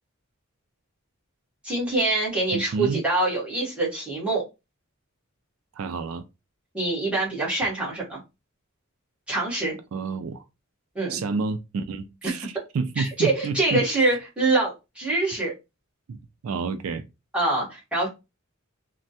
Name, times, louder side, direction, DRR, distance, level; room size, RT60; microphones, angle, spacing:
voice 1, 1.6-4.4 6.7-8.2 9.3-9.8 10.9-11.2 13.0-15.5 17.3-18.1, right 2 dB, 5° right, 1.3 m, -25 dB
voice 2, 2.5-3.0 5.7-6.3 9.9-10.4 11.1-13.9 16.1-17.0, right 4 dB, 80° right, 0.4 m, -29 dB
3.2 x 2.1 x 2.7 m
head